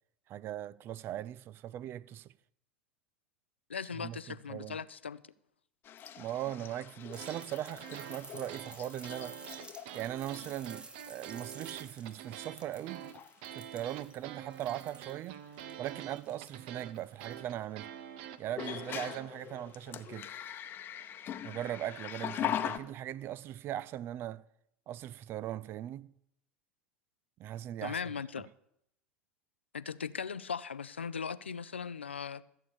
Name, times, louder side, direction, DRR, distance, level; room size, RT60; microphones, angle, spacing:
voice 1, 0.3-2.3 3.9-4.8 6.2-9.4 9.9-13.1 13.5-15.4 15.8-17.9 18.4-20.3 21.4-24.4 24.9-26.1 27.4-28.0, right 12 dB, 40° right, 0.5 m, -39 dB
voice 2, 3.7-5.2 27.8-28.5 29.7-32.4, left 6 dB, 80° left, 0.5 m, -38 dB
sound 1, 5.8-10.0 10.3-10.7 11.7-11.8 12.3-12.8 13.0-13.3 15.4-15.5 18.5-22.8, left 10 dB, 35° left, 0.9 m, -41 dB
sound 2, 7.1-17.5 18.9-19.0, right 3 dB, 15° right, 1.1 m, -53 dB
sound 3, 7.2-19.3, right 10 dB, 55° right, 0.9 m, -46 dB
14.0 x 8.4 x 6.8 m
figure-of-eight pair, 80°, 6 cm